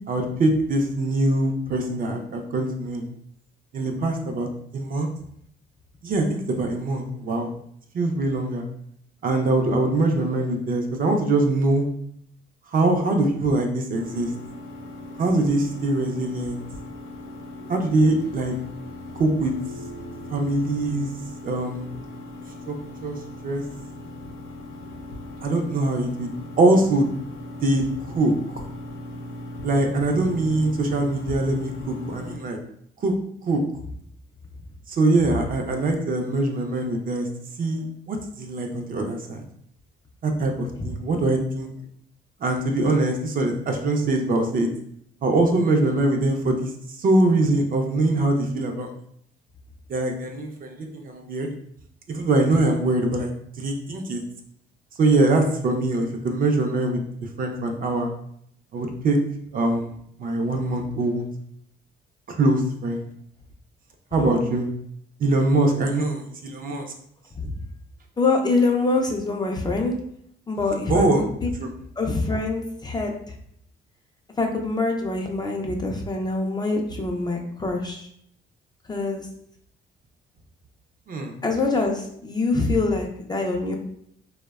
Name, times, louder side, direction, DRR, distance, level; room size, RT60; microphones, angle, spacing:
voice 1, 0.1-3.1 3.7-4.5 4.7-5.1 6.0-7.5 7.9-8.7 9.2-11.9 12.7-14.3 15.2-16.6 17.7-18.6 19.2-19.5 20.3-21.1 21.4-21.9 22.7-22.8 23.0-23.2 23.4-23.6 25.4-26.3 26.6-27.1 27.6-27.8 28.1-28.3 29.6-32.6 33.0-33.1 33.4-33.6 34.9-37.3 37.6-39.4 40.2-41.7 42.4-44.7 45.2-46.7 47.0-48.9 49.9-51.5 52.1-53.3 53.6-54.2 55.0-58.1 58.7-59.2 59.5-59.9 60.2-61.2 62.3-63.1 64.1-64.7 65.2-66.9 70.9-71.2 71.6-71.7 81.1-81.3, right 2 dB, 45° right, 3 dB, 0.4 m, -23 dB
sound 1, 13.9-32.4, left 1 dB, 80° left, 0.5 m, -38 dB
voice 2, 68.2-70.0 70.5-71.1 71.4-71.5 72.0-73.3 74.4-78.1 78.9-79.3 81.4-83.8, left 3 dB, 20° left, 1 dB, 0.3 m, -25 dB
2.6 x 2.1 x 2.3 m, 0.69 s
cardioid pair, 90°, 20 cm